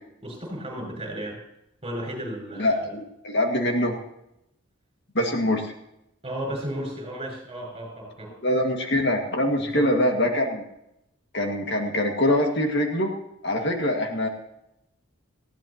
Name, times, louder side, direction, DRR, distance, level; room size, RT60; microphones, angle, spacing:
voice 1, 0.2-1.4 1.8-2.9 6.2-8.3 9.7-9.8, right 1 dB, 25° right, 1 dB, 6.3 m, -34 dB
voice 2, 2.6-4.0 5.2-5.7 8.4-10.6 11.3-13.1 13.4-14.3, left 1 dB, 50° left, 2 dB, 2.0 m, -24 dB
19.5 x 15.5 x 2.9 m, 0.82 s
head